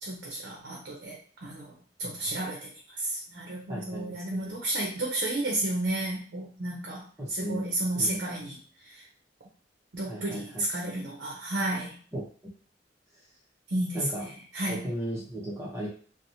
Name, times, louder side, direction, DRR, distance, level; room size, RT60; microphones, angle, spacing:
voice 1, 0.0-7.0 7.3-8.6 8.8-9.0 9.9-12.0 13.7-14.0 14.5-14.9, right 1 dB, 65° right, -2 dB, 0.6 m, -32 dB
voice 2, 3.7-4.5 7.2-7.6 7.9-8.2 10.0-10.6 12.1-12.3 13.9-14.3 14.7-15.9, equal, 15° right, -5 dB, 0.7 m, -36 dB
2.7 x 2.1 x 2.7 m, 0.42 s
head